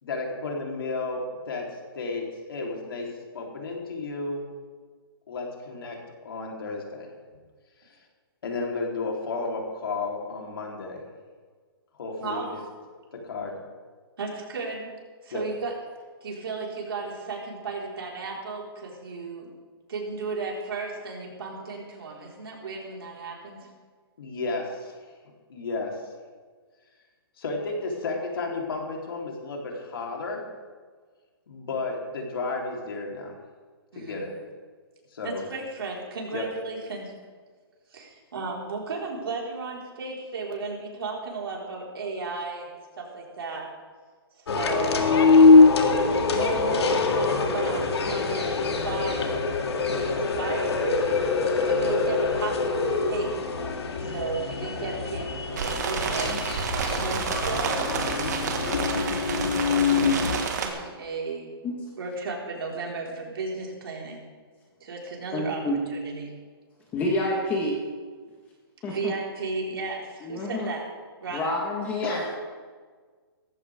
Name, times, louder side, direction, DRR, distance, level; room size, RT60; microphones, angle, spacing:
voice 1, 0.0-4.5 5.3-7.1 7.8-8.0 8.4-11.1 11.9-12.6 13.1-13.6 15.3-15.5 24.2-25.1 25.5-26.0 27.4-30.5 31.5-33.4 34.0-34.4 35.1-35.5 36.3-36.5 72.0-72.3, left 3 dB, 60° left, 0 dB, 3.6 m, -33 dB
voice 2, 12.2-12.6 14.2-14.9 15.2-15.7 16.2-19.5 19.9-23.7 33.9-34.3 35.2-37.1 37.9-43.6 44.3-45.5 46.1-49.5 49.8-51.0 51.6-53.3 54.0-56.4 56.9-59.2 60.0-61.5 62.0-64.2 64.8-65.6 65.9-66.3 68.8-70.8 71.2-71.4, right 4 dB, 65° right, -2 dB, 4.6 m, -34 dB
sound 1, 44.5-60.4, left 4 dB, 85° left, 2.2 m, -23 dB
sound 2, 55.6-60.7, right 5 dB, 45° right, 1.8 m, -29 dB
voice 3, 65.3-65.8 66.9-67.8 68.8-69.1 70.2-70.7 71.3-72.4, left 1 dB, 10° left, -1 dB, 1.4 m, -28 dB
17.5 x 15.0 x 3.6 m, 1.5 s
hypercardioid pair, 175°, 13 cm